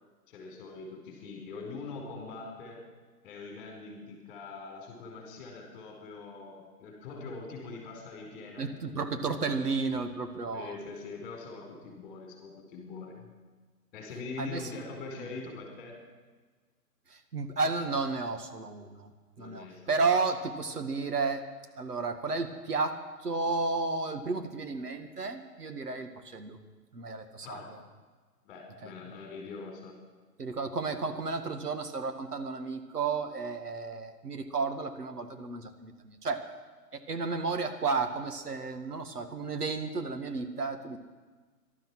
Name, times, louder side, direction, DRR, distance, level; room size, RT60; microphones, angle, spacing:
voice 1, 0.3-2.8 3.2-8.7 10.5-13.1 13.9-16.0 19.4-19.8 27.4-27.7 28.4-29.9, left 4 dB, 20° left, 1 dB, 4.5 m, -43 dB
voice 2, 8.6-10.8 14.4-14.8 15.2-15.3 17.1-19.1 19.4-21.4 21.8-26.6 26.9-27.8 28.8-28.9 30.4-36.4 36.9-41.0, right 4 dB, 65° right, 7 dB, 1.9 m, -32 dB
18.5 x 12.5 x 6.2 m, 1.4 s
figure-of-eight pair, 140°, 49 cm